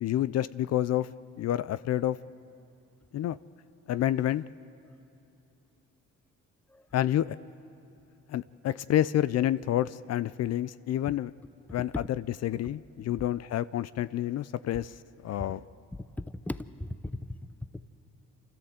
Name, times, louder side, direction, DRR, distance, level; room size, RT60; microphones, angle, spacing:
voice 1, 0.0-1.1 1.4-2.2 3.1-3.4 3.9-4.4 6.9-7.4 8.3-11.3 11.7-12.0 12.4-15.6, left 12 dB, 60° left, 16 dB, 0.4 m, -28 dB
voice 2, 15.9-17.3, left 1 dB, 5° left, 14 dB, 0.6 m, -37 dB
28.5 x 13.5 x 7.8 m, 2.8 s
cardioid pair, 90°, 30 cm